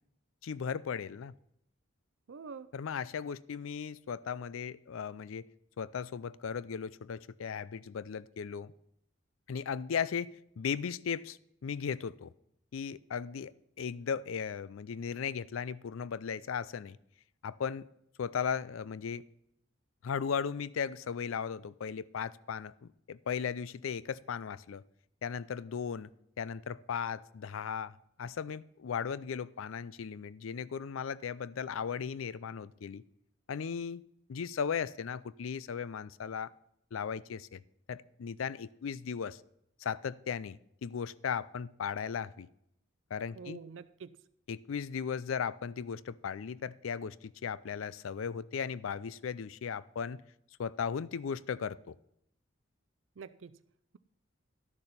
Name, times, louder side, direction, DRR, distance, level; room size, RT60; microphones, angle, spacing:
voice 1, 0.4-1.3 2.7-5.5 5.8-8.7 9.5-12.3 12.7-13.5 13.8-17.0 17.4-17.9 18.2-19.2 20.0-24.8 25.2-26.1 26.4-33.0 33.5-34.0 34.3-36.5 36.9-37.6 37.9-39.4 39.8-42.5 43.1-43.6 44.5-50.2 50.6-52.0, left 6 dB, 80° left, 19 dB, 0.4 m, -37 dB
voice 2, 2.3-2.7 43.4-44.1 53.2-53.6, right 5 dB, 70° right, 14 dB, 0.4 m, -46 dB
12.0 x 6.7 x 5.7 m, 0.77 s
head